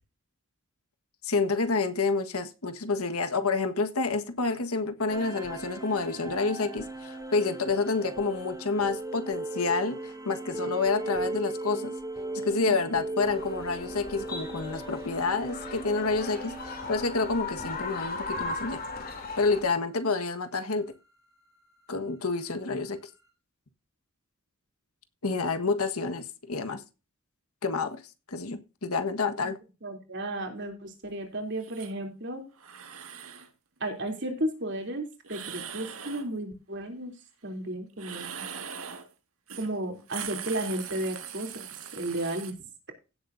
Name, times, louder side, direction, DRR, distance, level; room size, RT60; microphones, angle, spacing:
voice 1, 1.2-11.9 12.3-18.8 19.4-20.9 21.9-23.0 25.2-26.8 27.6-28.0 28.3-29.6, left 4 dB, 85° left, 1.5 m, -28 dB
sound 1, 5.1-19.2, right 2 dB, 15° right, 2.8 m, -38 dB
sound 2, 13.2-19.6, left 3 dB, 45° left, 3.1 m, -38 dB
voice 2, 29.8-32.4 33.8-37.1 37.4-38.3 39.6-41.7 41.9-42.5, right 1 dB, 55° right, 3.3 m, -33 dB
sound 3, 31.6-31.9 32.6-33.5 35.2-36.3 37.9-39.1 39.5-39.7 40.0-42.5, right 8 dB, 75° right, 1.9 m, -40 dB
16.5 x 7.8 x 2.7 m
head